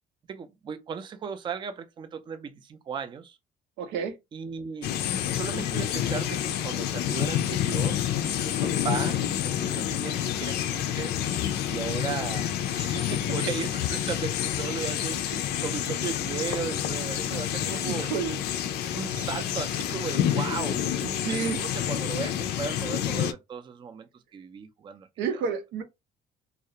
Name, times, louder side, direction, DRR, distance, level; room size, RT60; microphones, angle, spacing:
voice 1, 0.3-3.4 4.3-4.9 5.3-11.2 11.7-18.1 18.9-25.1, right 6 dB, 30° right, 0.4 m, -36 dB
voice 2, 3.8-4.1 17.6-18.4 21.0-21.6 25.2-25.8, right 6 dB, 85° right, 0.6 m, -30 dB
sound 1, 4.8-23.3, left 10 dB, 75° left, 0.4 m, -28 dB
2.3 x 2.0 x 2.7 m
cardioid pair, 110°, 17 cm